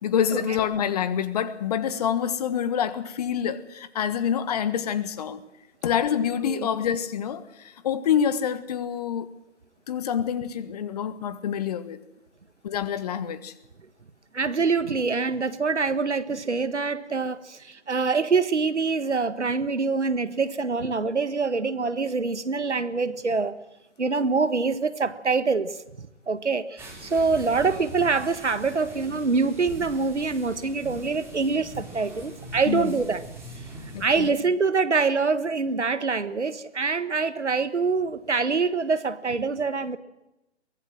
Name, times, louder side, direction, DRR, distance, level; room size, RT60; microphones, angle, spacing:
voice 1, 0.0-5.4 5.8-9.3 9.9-12.0 12.6-13.5 32.7-32.9 33.9-34.3, left 8 dB, 35° left, 1.4 m, -27 dB
voice 2, 14.3-23.5 24.0-25.8 26.3-33.2 34.0-40.0, right 4 dB, 80° right, 1.7 m, -25 dB
sound 1, 26.8-34.3, right 1 dB, 5° right, 5.0 m, -41 dB
23.5 x 17.0 x 7.6 m
figure-of-eight pair, 140°, 34 cm